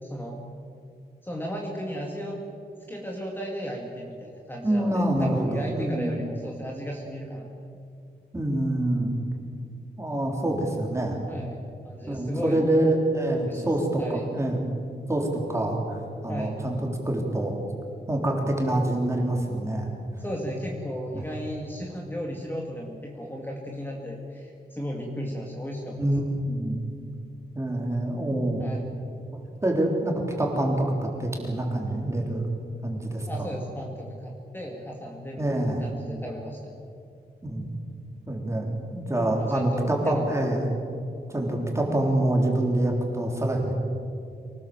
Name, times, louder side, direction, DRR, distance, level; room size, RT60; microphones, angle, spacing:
voice 1, 0.0-0.4 1.2-2.4 2.9-7.5 11.3-11.6 11.8-12.7 13.4-14.3 16.3-16.6 20.2-26.4 28.6-28.8 33.3-36.8 39.4-40.4, equal, 10° left, -1 dB, 2.2 m, -35 dB
voice 2, 4.6-6.2 8.3-9.1 10.0-11.2 12.0-14.7 15.1-16.8 17.1-17.5 18.1-19.9 21.1-21.2 26.0-26.2 26.5-26.8 27.5-28.6 29.3-32.5 32.8-33.3 35.4-35.8 37.4-37.7 38.3-40.6 41.3-43.7, right 1 dB, 15° right, 0 dB, 3.6 m, -26 dB
24.5 x 19.0 x 7.7 m, 2.5 s
wide cardioid pair, 175°, 17 cm